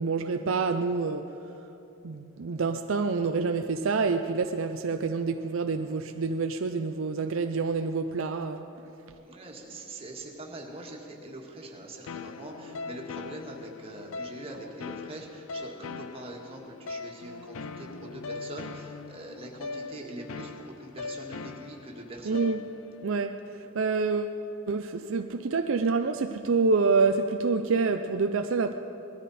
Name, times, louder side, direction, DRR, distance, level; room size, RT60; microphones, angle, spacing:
voice 1, 0.0-1.3 2.0-8.7 22.2-22.6 23.0-24.4 24.7-28.7, right 4 dB, 70° right, 0.5 m, -27 dB
voice 2, 9.1-22.4, right 1 dB, 30° right, 1.8 m, -43 dB
sound 1, 12.1-23.0, left 4 dB, 85° left, 0.5 m, -40 dB
19.5 x 13.5 x 4.2 m
head